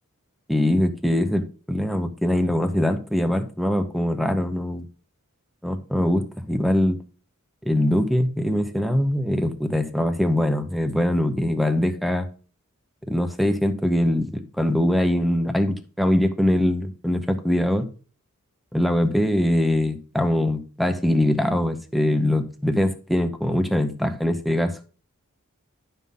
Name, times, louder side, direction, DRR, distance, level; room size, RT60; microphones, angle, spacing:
voice 1, 0.5-4.9 5.6-7.0 7.6-12.3 13.1-17.9 18.7-24.8, left 1 dB, ahead, 8 dB, 0.7 m, -22 dB
11.0 x 5.6 x 3.7 m, 0.38 s
head